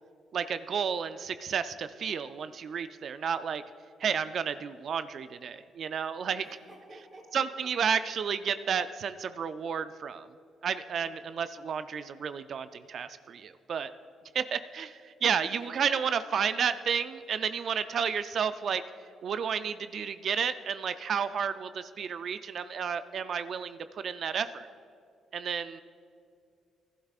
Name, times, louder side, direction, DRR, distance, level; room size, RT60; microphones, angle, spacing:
voice 1, 0.3-3.6 4.0-6.5 7.3-10.3 10.6-13.9 14.3-18.8 19.2-24.7 25.3-25.8, right 7 dB, 60° right, 12 dB, 0.4 m, -31 dB
voice 2, 6.4-7.4 15.4-16.0 16.2-16.7, right 1 dB, 25° right, -1 dB, 1.4 m, -51 dB
15.5 x 12.0 x 2.4 m, 2.4 s
cardioid pair, 90°, 0 cm